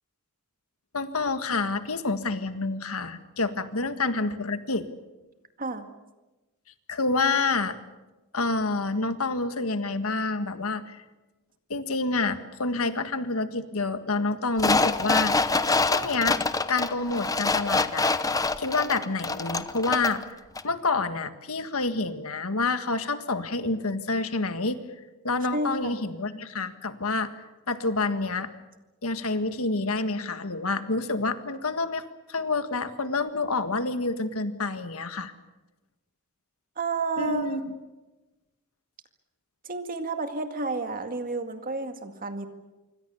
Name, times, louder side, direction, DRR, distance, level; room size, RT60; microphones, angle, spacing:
voice 1, 0.9-4.9 6.9-7.8 8.3-11.0 11.7-16.4 16.7-18.1 18.6-20.2 20.6-24.8 25.2-27.3 27.7-28.5 29.0-35.3 37.2-37.7, left 3 dB, 70° left, 10 dB, 1.7 m, -28 dB
sound 1, 14.6-20.2 20.6-20.7, left 3 dB, 15° left, 0.9 m, -25 dB
voice 2, 25.5-26.0 36.8-37.5 39.6-42.5, right 3 dB, 40° right, 7 dB, 2.1 m, -31 dB
26.5 x 24.0 x 7.1 m, 1.1 s
head